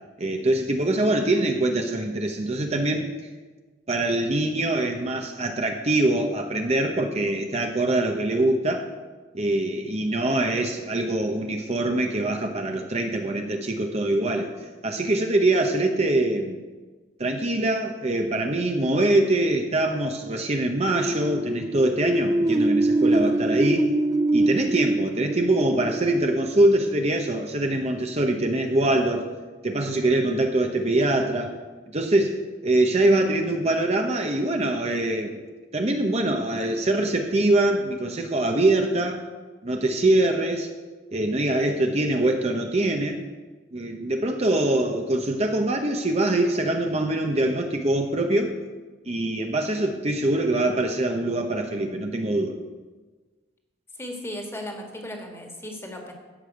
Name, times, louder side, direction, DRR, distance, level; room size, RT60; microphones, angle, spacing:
voice 1, 0.2-3.1 3.9-8.9 9.3-14.5 14.8-16.6 17.2-23.9 24.3-29.3 29.6-31.5 31.9-35.4 35.7-39.2 39.6-40.7 41.1-43.2 43.7-48.6 49.0-52.6, right 1 dB, 35° right, 4 dB, 1.0 m, -23 dB
sound 1, 20.8-26.5, right 2 dB, 20° right, 0.5 m, -24 dB
voice 2, 54.0-56.1, left 1 dB, 15° left, 2 dB, 1.8 m, -36 dB
14.0 x 5.6 x 8.1 m, 1.3 s
head